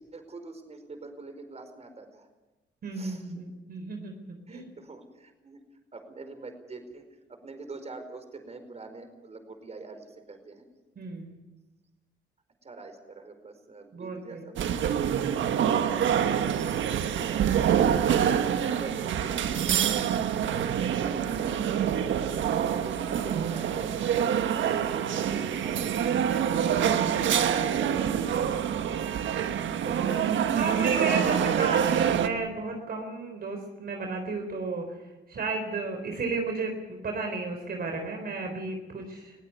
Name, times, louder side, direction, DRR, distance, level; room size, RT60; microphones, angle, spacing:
voice 1, 0.1-2.3 2.9-3.7 4.5-5.6 5.9-7.0 7.3-10.7 12.6-14.8 18.8-21.6 22.7-26.1 27.0-28.7 29.0-29.2 29.7-30.2 30.6-31.3, right 3 dB, 35° right, 7 dB, 4.9 m, -44 dB
voice 2, 2.8-4.2 4.5-4.7 11.0-11.3 13.9-14.5 22.1-23.4 30.6-34.9 35.3-39.3, right 3 dB, 50° right, 3 dB, 4.1 m, -34 dB
sound 1, 14.6-32.3, right 9 dB, 70° right, 1.5 m, -26 dB
21.5 x 16.5 x 9.5 m, 1.1 s
cardioid pair, 90°, 20 cm